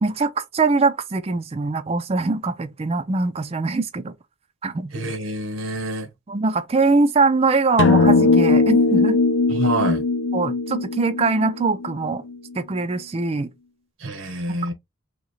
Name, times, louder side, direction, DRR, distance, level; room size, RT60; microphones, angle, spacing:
voice 1, 0.0-4.1 4.6-4.9 6.3-9.2 10.3-12.2 12.6-13.5, right 3 dB, 30° right, 0.4 m, -22 dB
voice 2, 4.9-6.1 9.5-10.0 14.0-14.7, right 2 dB, 75° right, 0.9 m, -27 dB
sound 1, 7.8-12.3, left 3 dB, 60° left, 0.5 m, -19 dB
3.0 x 2.8 x 4.0 m
head